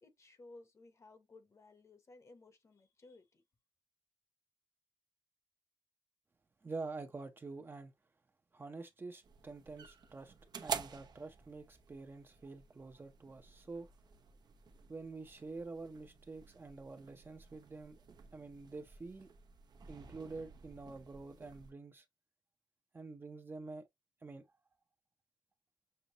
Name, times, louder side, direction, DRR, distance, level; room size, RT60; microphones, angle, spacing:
voice 1, 0.0-3.4, left 2 dB, 45° left, 1.1 m, -58 dB
voice 2, 6.6-7.9 8.5-10.3 10.6-13.9 14.9-18.0 18.3-19.3 19.9-22.0 22.9-23.9 24.2-24.5, right 3 dB, 30° right, 0.7 m, -47 dB
sound 1, 9.2-21.7, right 6 dB, 65° right, 0.9 m, -50 dB
6.7 x 2.3 x 2.9 m
wide cardioid pair, 140°, 7 cm